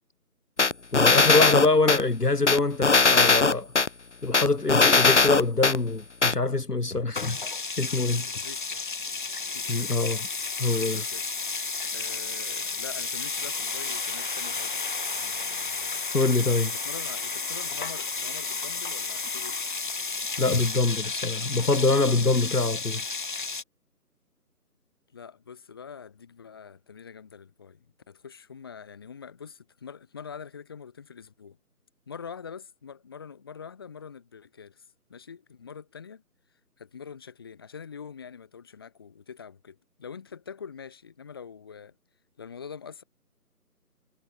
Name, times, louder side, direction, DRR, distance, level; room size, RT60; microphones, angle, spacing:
sound 1, 0.6-2.0 2.5-3.9 4.3-5.8 6.2-6.3, left 4 dB, 45° left, 1.3 m, -19 dB
voice 1, 0.9-3.7 4.2-7.4 7.8-8.3 9.7-10.2 10.6-11.0 16.1-16.7 20.4-23.0, left 3 dB, 70° left, 2.6 m, -24 dB
sound 2, 7.1-23.6, left 4 dB, 30° left, 2.0 m, -32 dB
voice 2, 8.2-8.9 9.5-9.9 10.6-11.2 11.9-19.6 25.1-31.6 32.1-36.2 36.8-41.9 42.4-43.0, left 6 dB, 15° left, 1.9 m, -44 dB
figure-of-eight pair, 160°, 48 cm